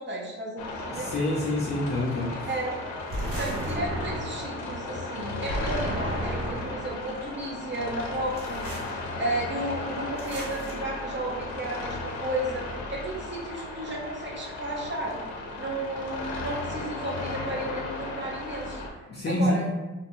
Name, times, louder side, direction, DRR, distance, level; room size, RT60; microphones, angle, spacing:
voice 1, 0.0-1.1 2.5-2.8 3.4-15.2 15.6-18.8 19.4-19.6, right 1 dB, 40° right, -3 dB, 0.8 m, -33 dB
sound 1, 0.6-18.9, left 2 dB, 80° left, 0.6 m, -35 dB
voice 2, 0.9-2.5 19.1-19.7, left 1 dB, 35° left, -5 dB, 0.5 m, -27 dB
sound 2, 3.1-4.6 5.5-6.9 8.4-8.9 10.2-10.7, right 1 dB, 55° right, 1.3 m, -33 dB
2.5 x 2.2 x 2.9 m, 1.1 s
cardioid pair, 90°, 30 cm